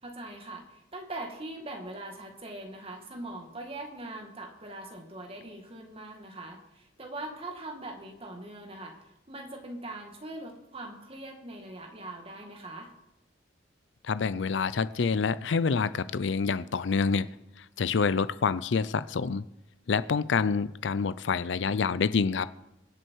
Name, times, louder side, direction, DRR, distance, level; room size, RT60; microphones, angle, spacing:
voice 1, 0.0-12.9, right 2 dB, 30° right, 2.2 m, -41 dB
voice 2, 14.0-17.3 17.8-19.4 19.9-22.5, left 5 dB, 75° left, 0.5 m, -27 dB
23.5 x 7.8 x 4.6 m
head